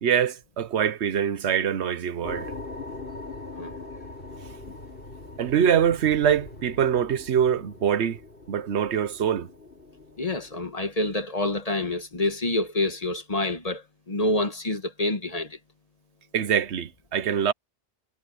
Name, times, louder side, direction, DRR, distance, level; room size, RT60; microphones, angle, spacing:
voice 1, 0.0-2.5 5.4-8.2 8.5-9.5 16.3-17.5, right 8 dB, 80° right, 1.1 m, -24 dB
sound 1, 2.2-10.6, left 2 dB, 55° left, 7.0 m, -41 dB
voice 2, 10.2-15.6, left 2 dB, 35° left, 1.4 m, -27 dB
omnidirectional pair, 1.1 m